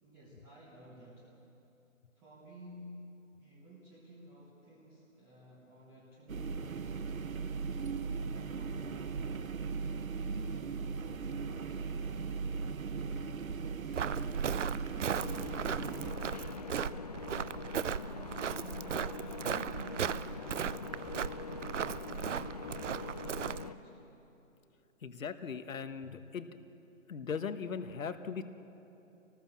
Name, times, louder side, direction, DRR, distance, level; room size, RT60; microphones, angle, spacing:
voice 1, 0.0-1.4 2.1-7.1 7.8-9.3 9.6-12.1 13.6-14.9 15.4-16.5 18.4-24.0, equal, 5° right, -4 dB, 1.1 m, -54 dB
sound 1, 6.3-16.1, right 5 dB, 80° right, 1.3 m, -38 dB
Walk footsteps, 13.9-23.7, right 7 dB, 65° right, 0.7 m, -37 dB
sound 2, 15.1-23.7, left 5 dB, 30° left, 0.6 m, -44 dB
voice 2, 25.0-26.5 27.1-28.4, left 6 dB, 75° left, 9 dB, 1.4 m, -39 dB
26.0 x 19.5 x 7.3 m, 2.9 s
hypercardioid pair, 165°, 40 cm